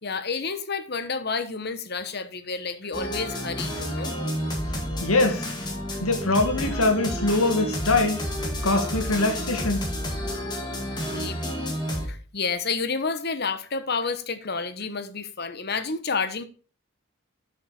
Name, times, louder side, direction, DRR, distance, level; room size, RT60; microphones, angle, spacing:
voice 1, 0.0-4.1 11.0-16.4, left 4 dB, 50° left, 1.1 m, -30 dB
sound 1, 2.9-12.1, equal, 20° left, 2.2 m, -30 dB
voice 2, 5.0-5.5 6.0-8.2 8.6-9.8, left 2 dB, 90° left, 2.0 m, -23 dB
12.0 x 6.1 x 4.4 m
head